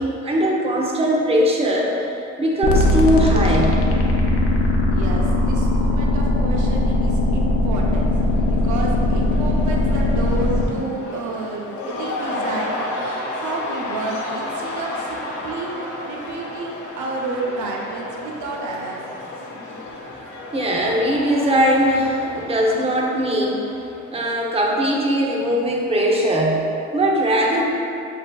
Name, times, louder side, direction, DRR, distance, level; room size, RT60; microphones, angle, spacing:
voice 1, 0.0-1.9 2.4-3.9 20.5-23.7 24.1-27.6, equal, 20° right, -2 dB, 0.7 m, -20 dB
sound 1, 2.6-10.6, left 1 dB, 50° left, 0.6 m, -19 dB
voice 2, 4.9-8.1 8.5-13.0 13.4-15.7 16.1-19.2, right 3 dB, 75° right, -1 dB, 0.6 m, -30 dB
Cheering / Crowd, 7.5-24.4, left 2 dB, 75° left, 1.0 m, -33 dB
7.6 x 2.7 x 2.3 m, 2.7 s
cardioid pair, 90°, 30 cm